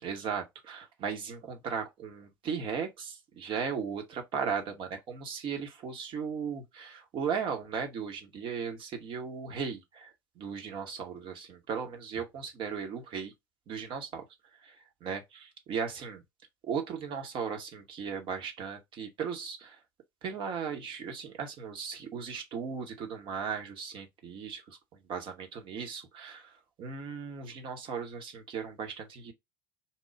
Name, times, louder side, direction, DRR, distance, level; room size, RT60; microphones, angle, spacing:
voice 1, 0.0-13.3 13.7-14.2 14.6-16.2 16.6-19.8 20.2-24.8 25.1-29.3, right 6 dB, 45° right, 1.0 m, -37 dB
4.3 x 2.3 x 3.5 m
figure-of-eight pair, 65°, 12 cm